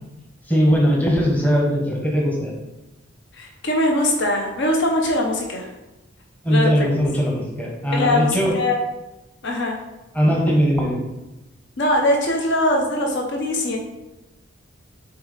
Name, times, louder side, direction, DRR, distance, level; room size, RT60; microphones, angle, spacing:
voice 1, 0.5-2.5 6.4-8.5 10.1-11.0, equal, 10° left, -2 dB, 1.0 m, -19 dB
voice 2, 3.3-5.7 6.5-6.9 7.9-8.8 9.4-9.8 11.8-13.8, left 1 dB, 60° left, 1 dB, 0.9 m, -21 dB
6.6 x 4.1 x 4.0 m, 1.0 s
head